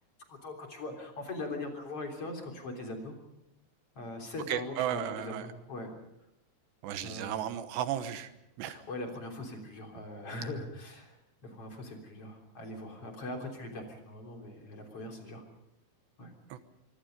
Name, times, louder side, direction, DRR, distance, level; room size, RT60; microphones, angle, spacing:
voice 1, 0.3-3.1 4.0-5.9 7.0-7.4 8.6-11.2 11.4-15.4 16.2-16.3, left 2 dB, 35° left, 2 dB, 4.1 m, -41 dB
voice 2, 4.5-5.5 6.8-8.3 8.6-8.8 16.5-16.6, right 10 dB, 85° right, 10 dB, 3.4 m, -34 dB
24.5 x 24.5 x 5.3 m, 0.86 s
omnidirectional pair, 4.8 m